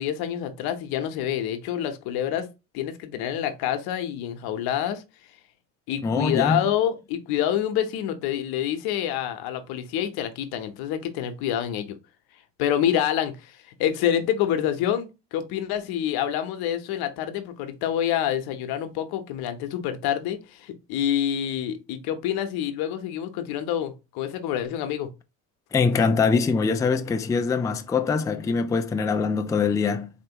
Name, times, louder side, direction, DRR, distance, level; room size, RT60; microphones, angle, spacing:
voice 1, 0.0-2.5 2.7-5.0 5.9-12.0 12.6-25.1, left 10 dB, 80° left, 0.9 m, -27 dB
voice 2, 6.0-6.6 25.7-30.1, left 5 dB, 10° left, 0.3 m, -23 dB
4.4 x 3.0 x 2.9 m
cardioid pair, 105°, 37 cm